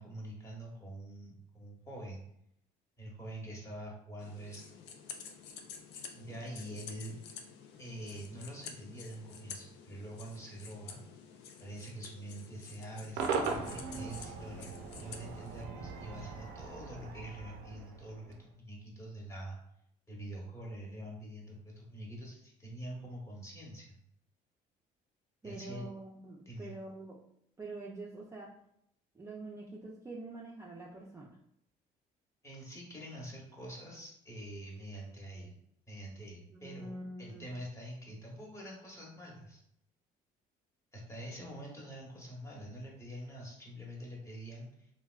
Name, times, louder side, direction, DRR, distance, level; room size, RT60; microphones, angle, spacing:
voice 1, 0.0-2.2 3.0-4.8 6.1-7.5 7.8-11.0 11.6-19.6 20.1-24.0 25.4-25.9 26.5-26.7 32.4-35.6 35.9-36.9 37.2-39.6 40.9-44.9, right 1 dB, 15° left, -3 dB, 1.0 m, -45 dB
sound 1, 4.2-15.6, left 6 dB, 90° left, 0.4 m, -50 dB
Cheering / Crowd / Fireworks, 13.2-18.4, right 5 dB, 90° right, 0.5 m, -39 dB
voice 2, 25.4-27.2 27.6-28.5 29.1-31.4 36.5-37.5, right 2 dB, 15° right, -3 dB, 0.4 m, -45 dB
3.3 x 2.2 x 2.3 m, 0.73 s
cardioid pair, 110°, 17 cm